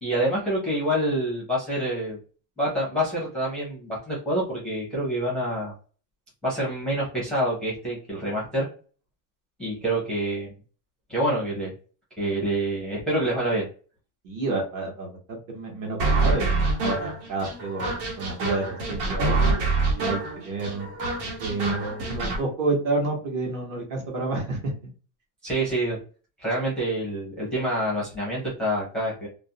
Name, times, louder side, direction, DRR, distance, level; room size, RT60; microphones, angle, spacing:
voice 1, 0.0-2.2 2.6-5.7 6.4-8.7 9.6-10.5 11.1-11.7 12.2-13.7 25.4-26.0 26.4-29.3, right 1 dB, ahead, -7 dB, 0.5 m, -27 dB
voice 2, 14.2-19.4 19.9-20.9 21.4-24.9, right 3 dB, 40° right, 0 dB, 0.9 m, -30 dB
sound 1, 16.0-22.4, right 3 dB, 80° right, 1.2 m, -26 dB
2.4 x 2.0 x 2.7 m, 0.37 s
cardioid pair, 175°, 48 cm